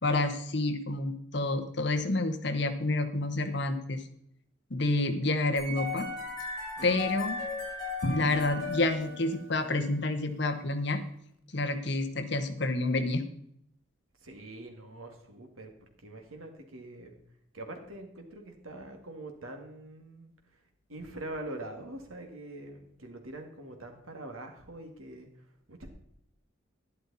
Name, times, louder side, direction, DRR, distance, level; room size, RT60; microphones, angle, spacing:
voice 1, 0.0-4.0 4.7-6.1 6.8-7.4 8.1-11.0 11.5-13.2, left 2 dB, 55° left, 8 dB, 1.1 m, -29 dB
sound 1, 5.6-9.7, left 3 dB, 20° left, 6.0 m, -37 dB
Drum, 8.0-10.0, equal, 90° left, 1.1 m, -37 dB
voice 2, 14.2-17.2 17.5-20.6 20.9-25.9, right 1 dB, 90° right, 4 dB, 2.2 m, -44 dB
11.5 x 11.0 x 4.1 m, 0.71 s
head